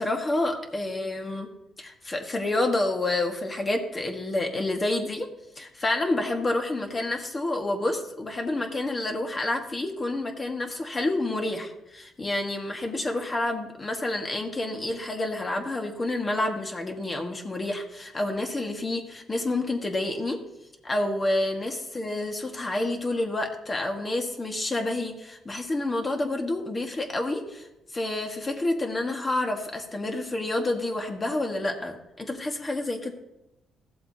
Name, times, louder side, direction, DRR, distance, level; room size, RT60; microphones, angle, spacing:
voice 1, 0.0-1.5 1.8-5.3 5.6-20.4 20.8-27.7 27.9-33.1, left 2 dB, 30° left, 3 dB, 1.7 m, -29 dB
15.0 x 7.6 x 2.9 m, 0.92 s
cardioid pair, 90°, 0 cm